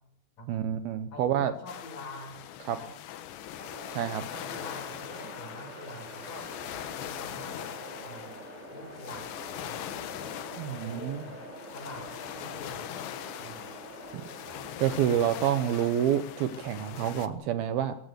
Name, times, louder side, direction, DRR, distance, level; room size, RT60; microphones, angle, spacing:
voice 1, 0.5-1.5 2.7-2.8 3.9-4.2 10.6-11.2 14.1-14.2 14.8-18.0, right 10 dB, 70° right, 11 dB, 2.5 m, -28 dB
voice 2, 1.1-2.4 2.7-2.9 4.3-6.5 7.0-7.7 8.0-8.4 8.7-9.4 9.7-9.8 10.5-11.4 11.7-12.8 13.4-13.8, left 2 dB, 50° left, 5 dB, 7.1 m, -45 dB
sound 1, 1.7-17.3, left 11 dB, 80° left, 3.6 m, -41 dB
sound 2, 3.6-14.7, right 1 dB, 10° right, 6.0 m, -46 dB
22.0 x 15.5 x 8.3 m, 0.67 s
omnidirectional pair, 5.1 m